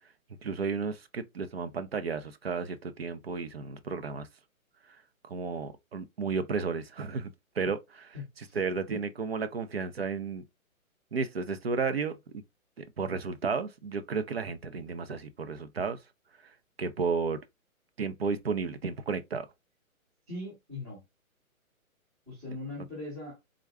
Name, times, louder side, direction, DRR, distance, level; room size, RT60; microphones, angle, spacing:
voice 1, 0.4-4.3 4.9-5.0 5.2-8.2 8.5-10.4 11.1-12.2 12.8-16.0 16.4-17.4 18.0-19.5, right 5 dB, 45° right, 0.5 m, -33 dB
voice 2, 8.1-8.6 8.9-9.0 20.3-21.0 22.3-23.4, left 2 dB, 5° right, 0.7 m, -40 dB
3.6 x 2.1 x 3.3 m
hypercardioid pair, 165°, 42 cm